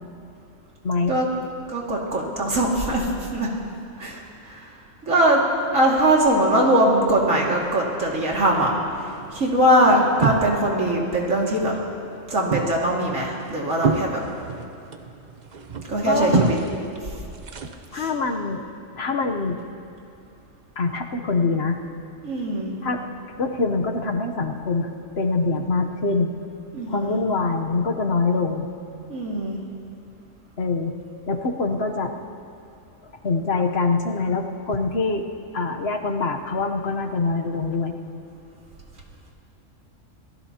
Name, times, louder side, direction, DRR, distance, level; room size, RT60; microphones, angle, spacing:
voice 1, 0.8-1.2 16.0-16.6 17.9-18.6 19.0-19.6 20.8-21.8 22.8-23.0 23.4-24.9 25.2-26.3 26.9-28.7 30.6-30.9 31.3-32.1 33.2-35.2 35.5-38.0, left 3 dB, 55° left, 4 dB, 1.2 m, -24 dB
voice 2, 1.7-3.5 4.0-4.7 5.0-5.4 5.7-8.7 9.3-11.8 12.3-14.2 15.9-16.6 17.9-18.0 22.2-22.7 26.7-27.2 29.1-29.6, right 1 dB, 80° right, -2 dB, 2.7 m, -21 dB
sound 1, 8.9-10.8 11.1-11.8 12.1-18.1, right 5 dB, 40° right, 0.8 m, -28 dB
26.5 x 17.5 x 2.9 m, 2.6 s
omnidirectional pair, 1.3 m